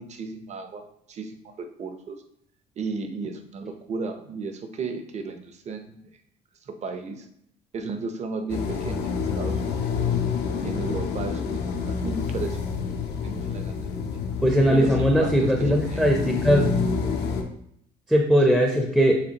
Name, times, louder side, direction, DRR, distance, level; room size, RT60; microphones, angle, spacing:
voice 1, 0.0-2.2 2.8-6.0 6.7-7.3 7.7-9.1 9.4-9.6 9.9-10.2 10.6-12.6 13.2-13.7 14.7-16.0, right 4 dB, 40° right, 6 dB, 0.7 m, -34 dB
sound 1, 8.5-17.4, left 5 dB, 85° left, 0.7 m, -28 dB
voice 2, 14.4-16.7 18.1-19.2, equal, 5° right, 1 dB, 0.6 m, -20 dB
7.1 x 2.5 x 2.9 m, 0.70 s
cardioid pair, 110°, 17 cm